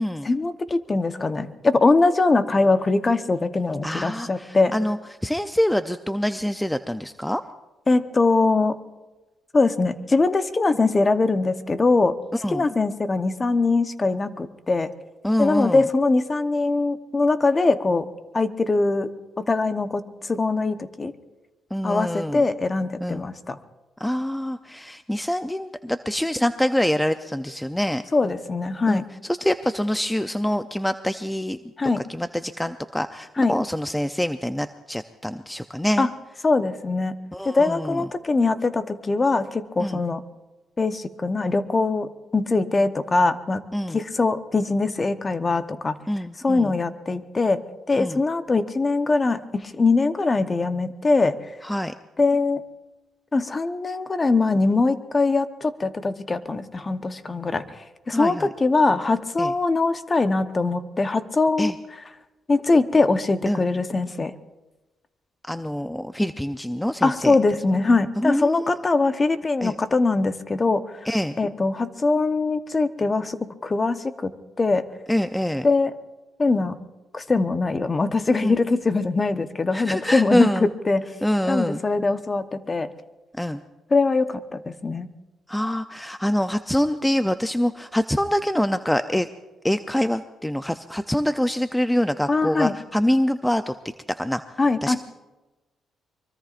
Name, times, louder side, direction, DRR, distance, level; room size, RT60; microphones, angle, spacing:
voice 1, 0.2-4.7 7.9-8.8 9.5-12.1 12.5-14.9 15.4-18.1 18.3-19.1 19.5-21.1 21.8-23.6 28.1-29.0 31.8-32.0 33.4-33.6 36.0-36.1 36.4-37.1 37.4-40.2 40.8-43.6 43.9-46.0 46.4-47.6 47.9-51.4 52.2-52.6 53.3-57.8 58.1-61.7 62.5-64.3 67.0-70.8 71.4-74.3 74.6-74.8 75.6-75.9 76.4-76.8 77.1-81.0 81.5-82.9 83.9-85.1 92.3-92.7 94.6-95.0, left 3 dB, 30° left, 10 dB, 1.0 m, -22 dB
voice 2, 3.8-7.4 12.4-12.7 15.2-15.9 21.7-22.4 23.0-23.2 24.0-28.1 28.9-31.6 32.0-36.1 37.3-38.0 39.8-40.0 43.7-44.0 46.1-46.7 48.0-48.2 51.6-51.9 58.1-58.5 59.4-59.5 61.6-61.8 63.5-63.6 65.5-67.3 68.2-68.8 69.6-69.7 71.1-71.4 75.1-75.7 78.4-78.6 79.7-80.7 81.2-81.8 83.3-83.6 85.5-89.3 89.6-93.7 94.2-94.4 94.8-94.9, left 1 dB, 5° left, 10 dB, 0.5 m, -25 dB
24.5 x 23.0 x 2.5 m, 1.1 s
cardioid pair, 90°, 0 cm